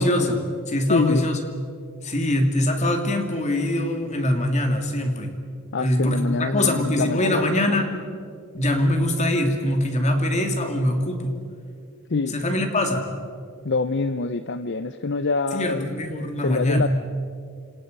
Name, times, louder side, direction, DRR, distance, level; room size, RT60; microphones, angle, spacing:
voice 1, 0.0-1.4 2.0-5.3 5.8-7.9 8.5-11.3 12.3-13.1 15.5-16.9, left 1 dB, 30° left, 4 dB, 2.8 m, -23 dB
voice 2, 0.9-1.3 5.7-7.6 12.1-12.4 13.6-15.9 16.4-16.9, left 4 dB, 55° left, 11 dB, 0.6 m, -25 dB
29.0 x 26.5 x 5.4 m, 2.4 s
head